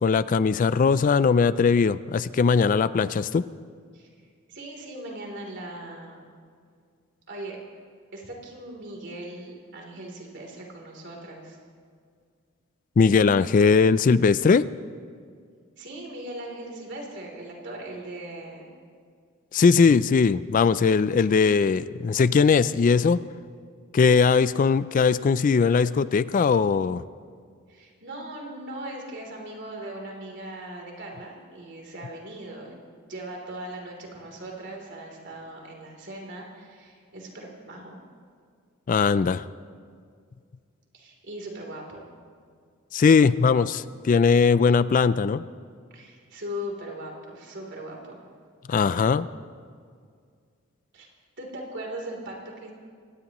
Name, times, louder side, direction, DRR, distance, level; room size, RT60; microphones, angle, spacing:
voice 1, 0.0-3.4 13.0-14.6 19.5-23.2 23.9-27.0 38.9-39.5 42.9-45.4 48.7-49.3, left 5 dB, 40° left, 16 dB, 0.3 m, -20 dB
voice 2, 4.5-6.2 7.3-7.6 8.1-11.6 15.8-18.7 27.7-32.8 33.1-38.0 40.9-42.0 45.9-48.2 50.9-51.1 51.4-52.7, right 1 dB, 55° right, 0 dB, 3.3 m, -39 dB
25.0 x 18.0 x 3.1 m, 2.1 s
head